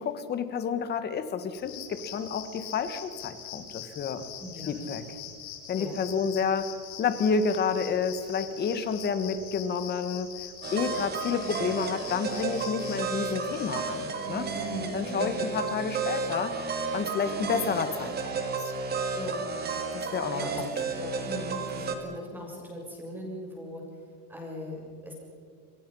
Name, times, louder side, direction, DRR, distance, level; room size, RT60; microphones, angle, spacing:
voice 1, 0.0-4.2 4.7-5.2 5.7-6.7 7.0-10.3 10.7-14.5 14.9-16.5 16.9-18.1 18.6-18.7 19.9-20.7, left 6 dB, 20° left, 10 dB, 1.6 m, -30 dB
sound 1, 1.5-13.7, left 9 dB, 50° left, 6.1 m, -43 dB
voice 2, 4.4-4.9 5.8-6.0 14.5-15.5 19.1-19.4 20.0-20.6 20.9-23.8 24.3-25.1, equal, 5° right, -2 dB, 7.0 m, -40 dB
sound 2, 10.6-22.0, right 4 dB, 20° right, 2.3 m, -32 dB
28.5 x 24.0 x 5.6 m, 2.2 s
supercardioid pair, 160°, 46 cm